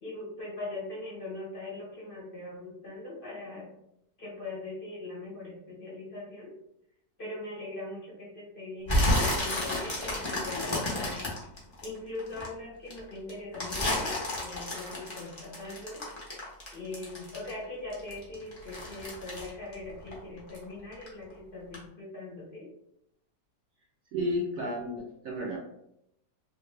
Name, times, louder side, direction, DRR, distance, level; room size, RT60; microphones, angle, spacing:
voice 1, 0.0-3.7 4.2-6.5 7.2-11.3 11.8-16.0 16.7-22.7, left 2 dB, 40° left, -6 dB, 1.0 m, -41 dB
sound 1, 8.9-12.5 12.9-17.6 17.9-20.6 20.9-21.3 21.7-21.8, left 1 dB, 25° left, 0.7 m, -31 dB
voice 2, 24.1-25.6, equal, 70° right, -1 dB, 0.9 m, -32 dB
3.1 x 2.5 x 3.2 m, 0.79 s
omnidirectional pair, 1.8 m